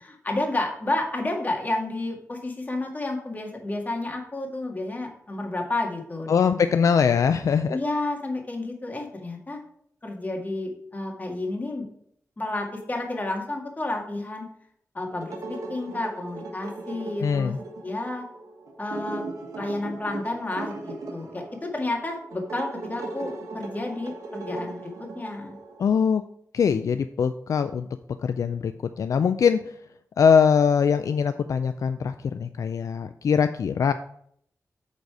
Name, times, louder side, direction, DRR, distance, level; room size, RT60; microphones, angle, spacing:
voice 1, 0.0-6.6 7.7-9.6 10.0-11.9 12.4-14.5 14.9-15.3 15.7-17.5 17.8-18.2 18.8-19.2 19.6-23.3 23.5-24.9 25.2-25.6, left 2 dB, 30° left, 1 dB, 1.8 m, -31 dB
voice 2, 6.3-7.8 17.2-17.6 25.8-26.2 26.5-27.9 28.2-28.7 29.0-29.7 30.2-33.9, left 6 dB, 70° left, 10 dB, 0.3 m, -22 dB
sound 1, 15.1-25.9, right 2 dB, 80° right, 1.2 m, -38 dB
8.2 x 4.1 x 4.7 m, 0.67 s
wide cardioid pair, 80°, 6 cm